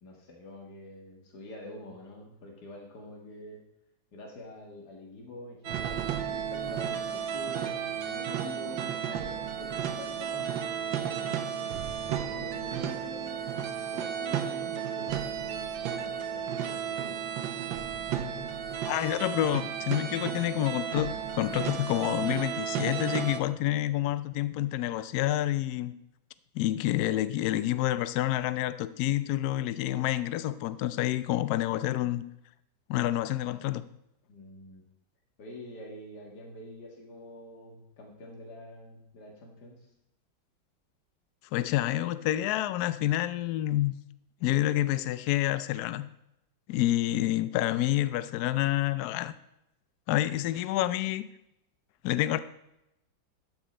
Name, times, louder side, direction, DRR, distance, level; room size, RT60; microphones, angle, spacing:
voice 1, 0.0-3.6 4.1-11.6 12.1-17.2 34.3-34.8 35.4-39.8, left 1 dB, 55° left, 2.3 m, -46 dB
sound 1, 5.6-23.4, right 8 dB, 75° right, 1.5 m, -33 dB
voice 2, 18.8-25.9 26.5-32.2 32.9-33.8 41.5-44.0 44.4-46.1 46.7-49.4 50.1-51.3 52.0-52.4, left 14 dB, 75° left, 0.9 m, -28 dB
12.5 x 6.1 x 4.3 m
omnidirectional pair, 2.2 m